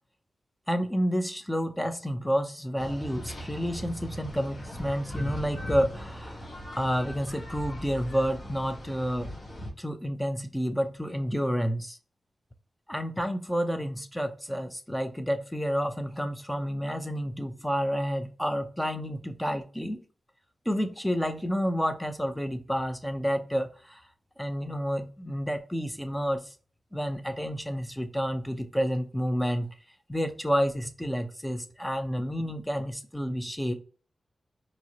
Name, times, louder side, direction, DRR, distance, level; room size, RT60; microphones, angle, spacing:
voice 1, 0.7-9.3 9.8-12.0 12.9-20.0 20.7-24.0 24.4-26.5 26.9-29.7 30.1-33.7, equal, 5° left, 0.6 m, -30 dB
sound 1, 2.8-9.7, equal, 50° left, 1.4 m, -39 dB
4.6 x 3.1 x 2.9 m
wide cardioid pair, 105°, 0 cm